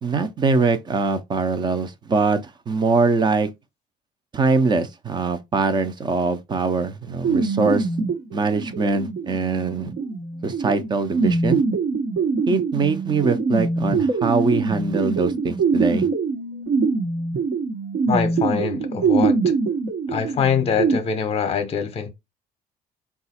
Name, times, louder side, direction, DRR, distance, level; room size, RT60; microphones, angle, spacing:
voice 1, 0.0-2.4 2.7-3.5 4.3-7.9 8.3-9.9 10.4-11.6 12.5-16.1, right 4 dB, 30° right, 0.6 m, -22 dB
sound 1, 7.2-21.0, right 4 dB, 70° right, 1.1 m, -23 dB
voice 2, 18.1-19.5 20.1-22.1, left 6 dB, 40° left, 0.7 m, -24 dB
4.0 x 2.4 x 4.2 m
cardioid pair, 135°, 15 cm